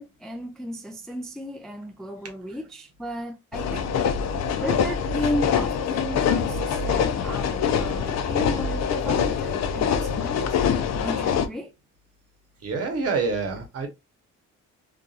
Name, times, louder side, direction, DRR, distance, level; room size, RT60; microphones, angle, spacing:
voice 1, 0.0-3.9 4.6-11.7, equal, ahead, 0.3 m, -34 dB
sound 1, 3.5-11.5, left 7 dB, 60° left, 0.5 m, -24 dB
voice 2, 12.6-13.9, right 4 dB, 50° right, 0.9 m, -26 dB
2.6 x 2.4 x 2.4 m
cardioid pair, 90°, 30 cm